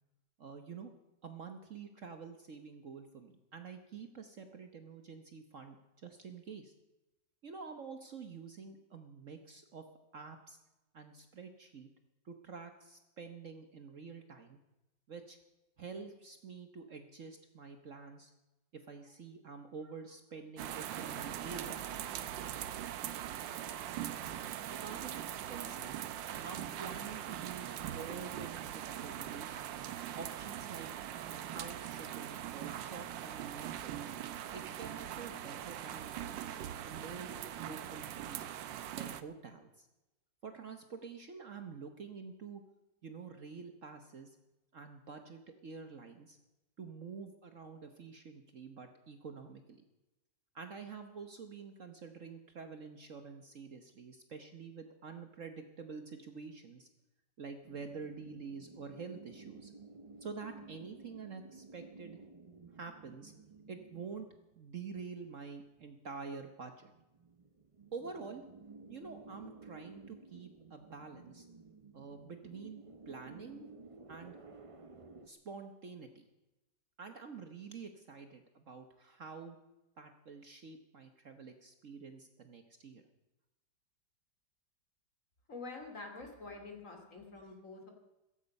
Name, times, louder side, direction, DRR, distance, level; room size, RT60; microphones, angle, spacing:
voice 1, 0.4-0.9 1.2-6.7 7.4-9.8 10.1-10.6 10.9-11.9 12.2-14.6 15.1-15.4 15.8-18.3 18.7-21.9 24.7-26.0 26.4-29.7 30.2-30.9 31.4-34.1 34.5-38.5 39.0-39.9 40.4-42.6 43.0-44.4 44.7-46.4 46.8-49.8 50.5-56.9 57.4-59.7 60.2-62.2 62.7-63.3 63.7-64.3 64.6-66.9 67.9-68.4 68.9-71.5 71.9-73.7 74.1-74.4 75.3-76.3 77.0-79.6 80.0-83.0, right 5 dB, 50° right, 7 dB, 1.3 m, -48 dB
sound 1, 20.6-39.2, right 11 dB, 85° right, 1.5 m, -41 dB
sound 2, 57.6-64.9 65.3-65.4 65.6-66.1 66.7-75.3, right 3 dB, 30° right, 0.6 m, -54 dB
voice 2, 85.5-87.9, left 3 dB, 45° left, 3 dB, 3.0 m, -47 dB
15.5 x 15.0 x 5.4 m, 0.99 s
omnidirectional pair, 2.0 m